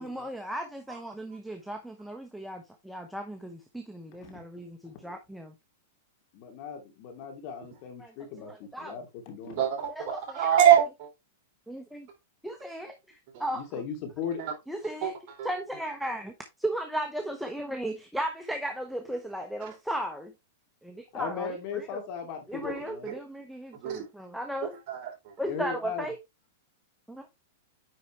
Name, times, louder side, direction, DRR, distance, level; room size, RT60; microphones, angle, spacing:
voice 1, 0.0-5.5 8.0-8.1 8.4-9.0 10.0-10.5 11.7-12.1 12.4-13.0 13.4-13.8 14.7-15.1 15.4-16.3 16.6-20.3 20.8-21.5 21.7-22.0 22.5-24.8 25.4-26.2 27.1-27.2, right 1 dB, ahead, 0.9 m, -36 dB
voice 2, 6.3-9.6 13.5-14.4 21.1-23.1 25.4-26.1, left 7 dB, 45° left, 2.7 m, -37 dB
voice 3, 9.4-11.1 13.3-13.4 14.4-14.5 15.0-15.5 19.7-19.8 22.7-22.8 23.0-23.2 23.7-24.1 24.9-25.3, right 10 dB, 45° right, 3.3 m, -25 dB
9.6 x 4.2 x 3.3 m
supercardioid pair, 150°, 0 cm